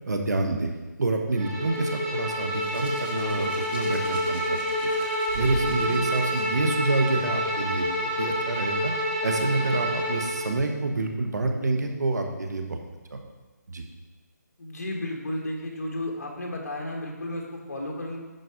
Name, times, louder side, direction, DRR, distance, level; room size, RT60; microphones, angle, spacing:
voice 1, 0.1-0.7 1.0-4.9 5.4-7.9 8.2-8.9 9.2-12.8 13.1-13.2 13.7-13.8, right 2 dB, 65° right, 4 dB, 1.3 m, -27 dB
Bowed string instrument, 1.3-10.5, equal, 15° right, 1.5 m, -28 dB
Hands, 2.5-6.4 7.5-7.7, right 1 dB, 35° right, 1.4 m, -40 dB
voice 2, 14.6-18.2, left 1 dB, 55° left, 0 dB, 1.9 m, -33 dB
11.0 x 4.1 x 5.0 m, 1.3 s
hypercardioid pair, 170°, 10 cm